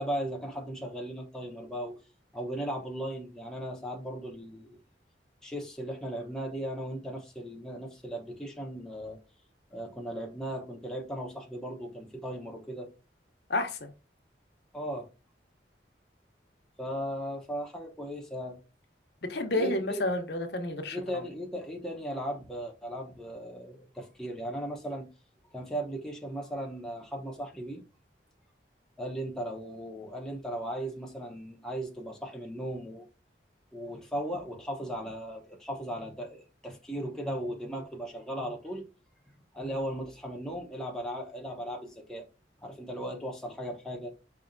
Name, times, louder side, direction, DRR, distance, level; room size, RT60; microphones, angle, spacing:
voice 1, 0.0-2.0 2.3-4.8 5.4-9.2 9.7-12.9 14.7-15.1 16.8-18.6 19.5-20.0 20.9-25.1 25.5-27.8 29.0-33.1 33.7-38.8 39.5-42.2 42.6-44.1, equal, 5° left, 0.7 m, -37 dB
voice 2, 13.5-13.9 19.3-21.2, left 1 dB, 65° left, 0.8 m, -30 dB
5.2 x 2.7 x 2.5 m
head